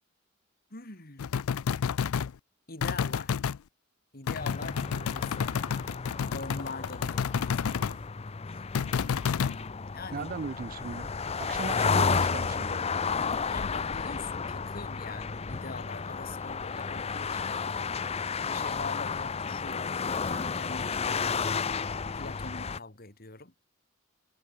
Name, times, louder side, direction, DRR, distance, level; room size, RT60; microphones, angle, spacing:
voice 1, 0.7-1.4 2.7-3.4 4.1-5.5 6.3-8.0 8.5-8.6 9.9-10.3 13.5-17.9 18.5-21.7 22.1-23.5, left 3 dB, 45° left, 3.4 m, -44 dB
sound 1, 1.2-2.3 2.8-3.6 4.3-8.0 8.7-9.6, left 7 dB, 90° left, 0.4 m, -30 dB
sound 2, 4.4-22.8, left 5 dB, 30° left, 0.6 m, -32 dB
voice 2, 10.1-11.1 11.4-12.9, right 5 dB, 40° right, 0.4 m, -37 dB
Piano, 14.1-19.1, right 1 dB, 15° right, 1.5 m, -59 dB
head